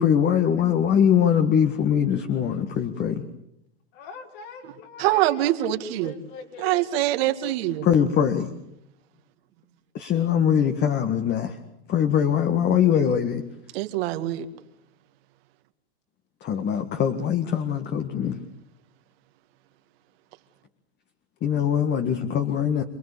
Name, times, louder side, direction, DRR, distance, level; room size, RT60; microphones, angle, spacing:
voice 1, 0.0-3.3 7.8-8.5 9.9-11.6 11.9-13.4 16.4-18.4 21.4-22.8, left 8 dB, 30° left, 1.9 m, -22 dB
voice 2, 3.9-6.8, left 5 dB, 60° left, 5.7 m, -42 dB
voice 3, 5.0-6.1 6.6-7.9 13.7-14.5, right 14 dB, 65° right, 2.3 m, -24 dB
28.0 x 20.0 x 8.5 m
supercardioid pair, 130°, 33 cm